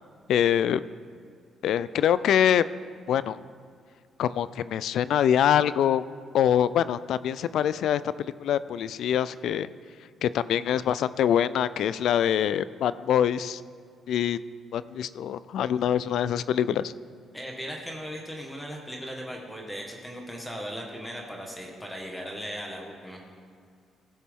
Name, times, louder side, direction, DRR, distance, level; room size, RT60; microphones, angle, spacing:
voice 1, 0.3-0.8 1.6-2.7 3.1-3.4 4.2-6.0 6.3-9.7 10.2-13.6 14.1-14.4 14.7-16.9, left 9 dB, 75° left, 16 dB, 0.3 m, -24 dB
voice 2, 17.3-23.2, equal, 10° left, -1 dB, 1.6 m, -38 dB
16.0 x 7.1 x 3.7 m, 2.1 s
cardioid pair, 90°, 0 cm